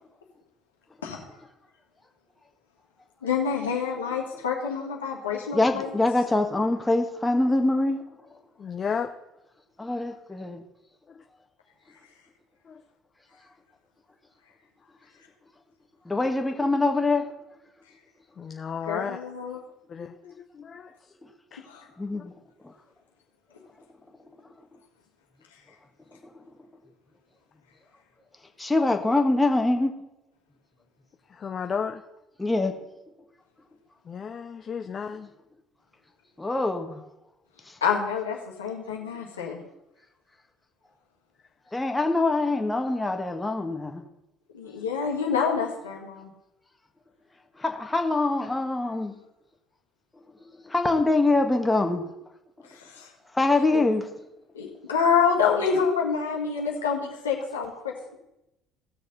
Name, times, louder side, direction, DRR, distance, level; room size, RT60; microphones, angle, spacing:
voice 1, 3.2-5.9 18.9-19.6 21.7-21.9 37.8-39.6 44.5-46.3 52.7-53.1 53.7-53.9 54.5-58.1, left 6 dB, 90° left, 1.6 m, -27 dB
voice 2, 5.5-8.0 9.8-10.6 16.0-17.3 22.0-22.3 22.6-22.7 26.1-26.4 28.6-29.9 32.4-32.8 36.4-37.1 37.7-37.8 41.7-44.0 47.6-49.1 50.6-52.1 52.6-52.7 53.3-54.1, left 2 dB, 15° left, 1.5 m, -24 dB
voice 3, 8.6-9.1 11.1-11.2 12.7-12.8 18.4-19.2 19.9-21.0 21.5-21.7 31.3-32.0 34.0-35.3, left 6 dB, 40° left, 0.6 m, -33 dB
17.0 x 6.5 x 4.0 m
hypercardioid pair, 60°, 0 cm